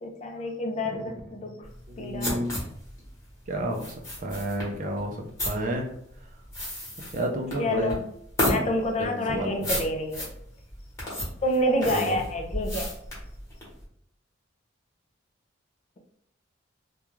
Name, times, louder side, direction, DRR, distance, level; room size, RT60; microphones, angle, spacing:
voice 1, 0.0-1.7 2.0-2.3 7.6-8.0 8.4-10.3 11.4-12.9, left 1 dB, 35° left, 4 dB, 0.4 m, -28 dB
sound 1, 1.6-13.8, left 1 dB, 15° left, 1.0 m, -33 dB
voice 2, 1.9-2.5 3.5-5.9 7.1-8.0 9.0-9.7 11.9-12.2, right 1 dB, 40° right, 2 dB, 0.4 m, -30 dB
2.3 x 2.2 x 3.0 m, 0.69 s
head